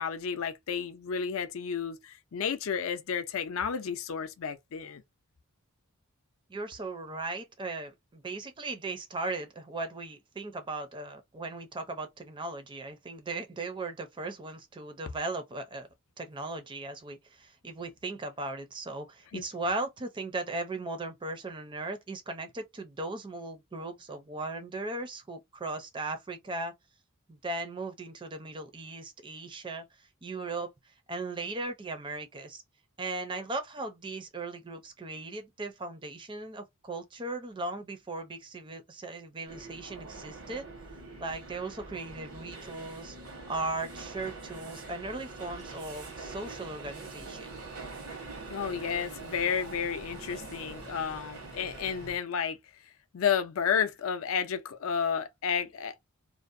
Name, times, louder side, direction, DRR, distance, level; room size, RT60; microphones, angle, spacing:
voice 1, 0.0-5.0 19.3-19.4 48.5-52.6 53.1-56.0, left 7 dB, 70° left, 0.4 m, -31 dB
voice 2, 6.5-15.9 16.2-26.7 27.3-32.6 33.0-40.6 41.2-47.5, right 2 dB, 20° right, 0.4 m, -38 dB
sound 1, 39.5-52.2, right 3 dB, 80° right, 1.1 m, -44 dB
2.6 x 2.0 x 2.5 m
head